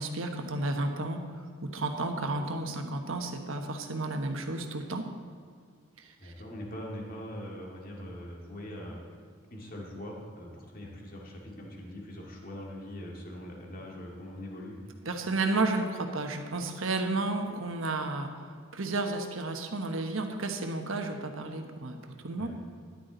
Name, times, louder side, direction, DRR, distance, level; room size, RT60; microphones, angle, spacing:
voice 1, 0.0-5.0 6.0-6.3 15.0-18.3 18.7-22.0 22.2-22.5, right 2 dB, 70° right, 4 dB, 1.3 m, -32 dB
voice 2, 6.2-9.0 9.5-14.7 22.4-22.5, equal, 45° left, -1 dB, 2.1 m, -42 dB
13.5 x 11.0 x 4.0 m, 2.1 s
head